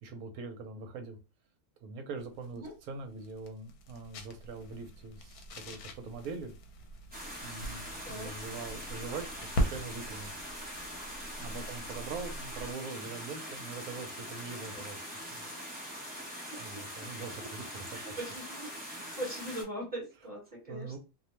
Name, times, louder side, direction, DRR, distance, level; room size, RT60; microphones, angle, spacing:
voice 1, 0.0-1.2 1.8-6.5 7.4-10.3 11.4-15.0 15.3-15.5 16.6-18.1 20.7-21.0, right 4 dB, 75° right, 1.0 m, -43 dB
sound 1, 2.2-12.8, equal, 80° left, 1.1 m, -41 dB
sound 2, 7.1-19.6, equal, 10° right, 0.4 m, -43 dB
voice 2, 16.5-16.8 17.9-18.9 19.2-21.0, right 1 dB, 40° right, 1.3 m, -41 dB
2.7 x 2.1 x 2.9 m
omnidirectional pair, 1.6 m